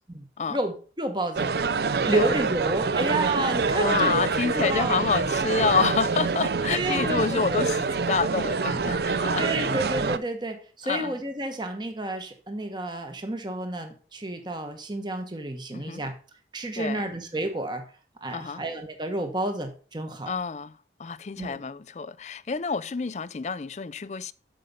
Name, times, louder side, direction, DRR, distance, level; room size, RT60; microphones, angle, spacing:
voice 1, 0.1-1.5 2.0-5.1 6.7-7.4 9.4-16.1 16.5-17.8 18.2-20.3 21.4-21.6, right 1 dB, 25° right, 1.2 m, -30 dB
sound 1, 1.4-10.2, right 4 dB, 60° right, 0.5 m, -26 dB
voice 2, 3.7-9.5 10.8-11.2 15.7-16.0 16.8-17.1 18.3-18.6 20.3-24.3, left 5 dB, 40° left, 0.4 m, -28 dB
13.0 x 5.4 x 5.3 m
head